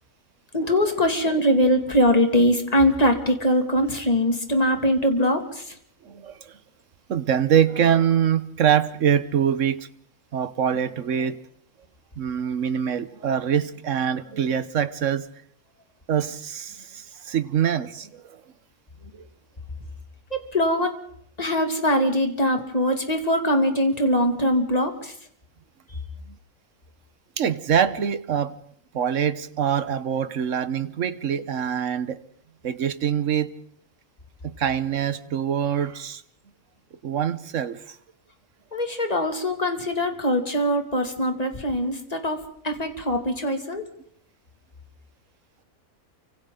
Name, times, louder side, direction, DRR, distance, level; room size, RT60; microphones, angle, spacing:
voice 1, 0.5-5.7 20.3-20.9 21.4-25.1 38.7-43.8, equal, 25° left, 4 dB, 2.5 m, -22 dB
voice 2, 7.1-9.9 10.3-11.4 12.2-15.3 16.1-18.2 27.4-28.5 28.9-32.2 32.6-33.5 34.4-36.2 37.0-37.8, right 8 dB, 60° right, 13 dB, 1.3 m, -24 dB
29.0 x 25.5 x 3.9 m, 0.63 s
omnidirectional pair, 1.5 m